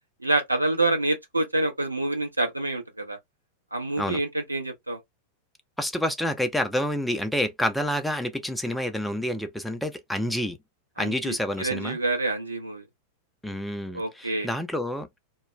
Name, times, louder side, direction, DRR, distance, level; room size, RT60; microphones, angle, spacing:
voice 1, 0.2-3.2 3.7-5.0 11.0-12.8 13.9-14.5, right 2 dB, 85° right, 0.6 m, -27 dB
voice 2, 5.8-10.6 11.0-12.0 13.4-15.1, equal, 5° left, 0.4 m, -28 dB
2.2 x 2.1 x 3.0 m
figure-of-eight pair, 90°, 0 cm